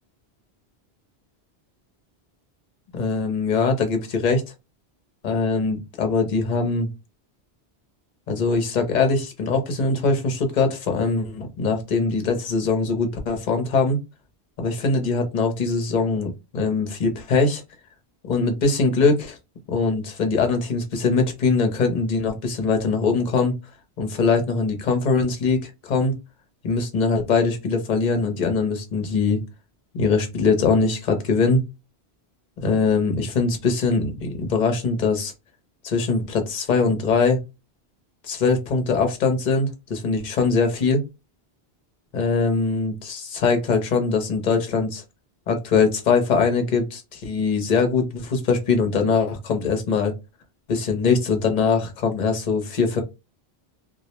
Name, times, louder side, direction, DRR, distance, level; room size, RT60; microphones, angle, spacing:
voice 1, 2.9-4.4 5.2-6.9 8.3-14.0 14.6-17.6 18.2-19.4 19.7-23.6 24.0-26.2 26.6-29.4 29.9-31.6 32.6-35.3 35.8-37.4 38.2-41.0 42.1-45.0 45.5-50.1 50.7-53.0, left 4 dB, 50° left, 5 dB, 0.7 m, -22 dB
2.3 x 2.0 x 2.8 m, 0.25 s
omnidirectional pair, 1.1 m